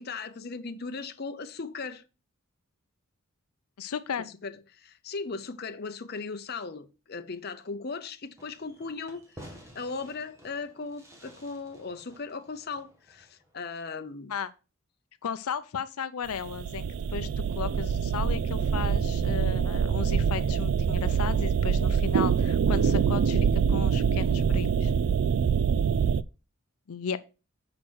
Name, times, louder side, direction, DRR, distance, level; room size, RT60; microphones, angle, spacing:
voice 1, 0.0-2.0 4.4-14.3, left 4 dB, 45° left, 0.7 m, -38 dB
voice 2, 3.8-4.3 14.3-14.5 15.2-16.8 17.1-24.9 26.9-27.2, left 7 dB, 90° left, 0.5 m, -35 dB
Fireworks, 8.4-13.6, equal, 15° right, 1.7 m, -52 dB
sound 1, 16.3-26.2, right 7 dB, 70° right, 0.3 m, -25 dB
6.1 x 4.9 x 6.2 m
head